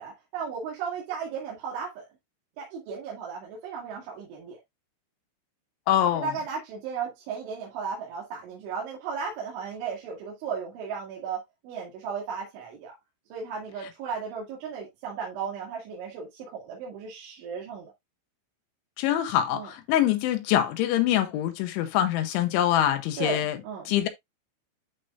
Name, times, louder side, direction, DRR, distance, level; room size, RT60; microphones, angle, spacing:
voice 1, 0.0-2.0 2.6-4.6 6.1-13.0 13.3-17.9 19.5-19.7 23.2-23.9, right 6 dB, 75° right, 4.4 m, -35 dB
voice 2, 5.9-6.3 19.0-23.6 23.9-24.1, left 11 dB, 80° left, 3.1 m, -24 dB
12.0 x 4.4 x 2.5 m
omnidirectional pair, 5.7 m